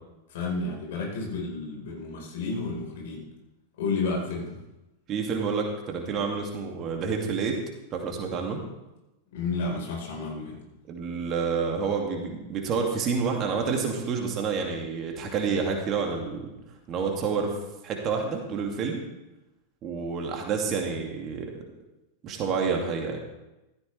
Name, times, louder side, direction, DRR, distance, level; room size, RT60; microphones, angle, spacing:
voice 1, 0.3-3.2 3.8-4.6 9.3-10.6, left 3 dB, 55° left, -1 dB, 4.7 m, -31 dB
voice 2, 5.1-7.6 7.9-8.6 10.9-16.5 16.9-17.6 17.8-19.0 19.8-21.5 22.2-23.2, right 5 dB, 30° right, 2 dB, 2.6 m, -28 dB
15.5 x 14.0 x 3.5 m, 0.97 s
figure-of-eight pair, 90°, 0 cm